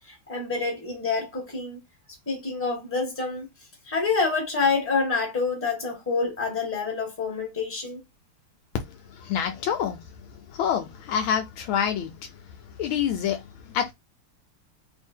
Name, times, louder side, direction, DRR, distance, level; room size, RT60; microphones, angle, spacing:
voice 1, 0.0-1.8 2.3-3.5 3.9-8.0, left 4 dB, 5° left, 1.2 m, -27 dB
voice 2, 9.2-10.0 10.5-12.1 12.8-13.4 13.7-13.9, left 8 dB, 75° left, 1.3 m, -26 dB
3.3 x 2.6 x 4.4 m
omnidirectional pair, 2.4 m